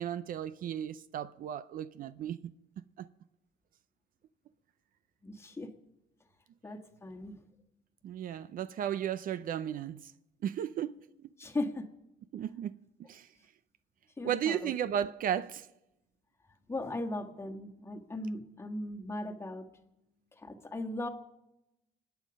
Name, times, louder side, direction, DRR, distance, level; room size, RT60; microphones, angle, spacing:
voice 1, 0.0-2.4 3.0-3.1 8.0-10.0 10.4-11.0 12.3-12.8 13.1-13.3 14.2-15.7, right 10 dB, 55° right, 0.5 m, -34 dB
voice 2, 5.2-5.7 6.6-7.4 11.4-11.9 14.2-14.7 16.7-19.6 20.4-21.1, left 2 dB, 15° left, 1.6 m, -38 dB
25.5 x 9.3 x 5.3 m
cardioid pair, 110°, 17 cm